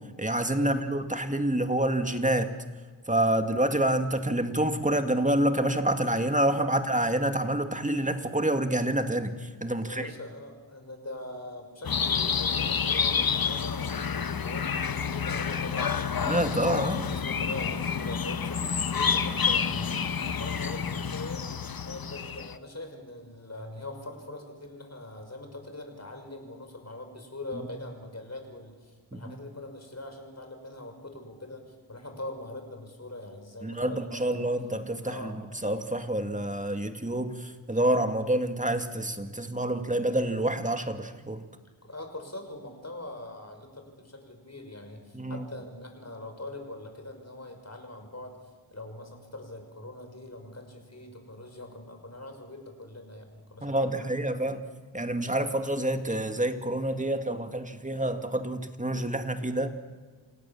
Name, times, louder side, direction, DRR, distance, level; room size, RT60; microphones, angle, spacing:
voice 1, 0.2-2.5 3.1-10.1 16.2-17.1 29.1-29.4 33.6-35.3 35.6-41.4 45.1-45.4 53.6-54.6 54.9-59.7, right 1 dB, 15° right, 7 dB, 2.3 m, -27 dB
voice 2, 9.8-16.5 17.0-34.5 35.0-35.4 41.2-41.3 41.8-48.3 48.7-54.1, left 2 dB, 35° left, 4 dB, 6.0 m, -42 dB
sound 1, 11.8-22.6, left 6 dB, 50° left, 1.1 m, -29 dB
28.5 x 17.5 x 7.4 m, 1.4 s
cardioid pair, 50°, 46 cm